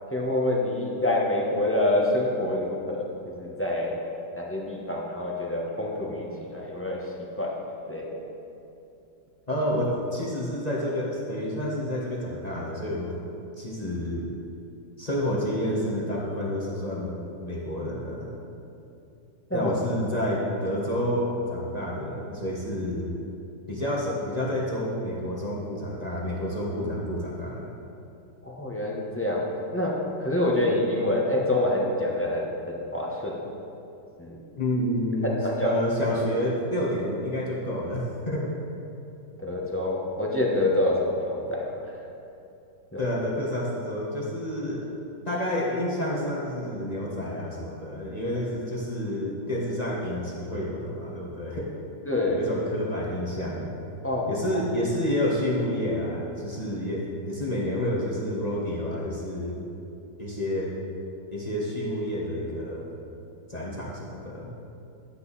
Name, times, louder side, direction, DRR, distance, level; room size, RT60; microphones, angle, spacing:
voice 1, 0.1-3.1 3.3-4.0 4.3-7.0 7.4-7.5 7.9-8.1 19.5-19.7 28.4-29.9 30.2-33.4 34.2-34.4 35.2-35.7 39.4-41.6 42.9-43.0 52.1-52.4 54.0-54.6, left 1 dB, 10° left, -3 dB, 1.1 m, -26 dB
voice 2, 9.5-13.1 13.6-14.3 15.0-17.1 17.4-18.3 19.5-23.1 23.7-27.7 34.6-35.3 35.6-38.5 43.0-44.9 45.3-51.7 52.3-53.7 54.3-59.5 60.2-60.7 61.3-62.9 63.5-64.5, left 1 dB, 25° left, -5 dB, 1.4 m, -29 dB
12.0 x 8.1 x 4.2 m, 2.7 s
omnidirectional pair, 1.8 m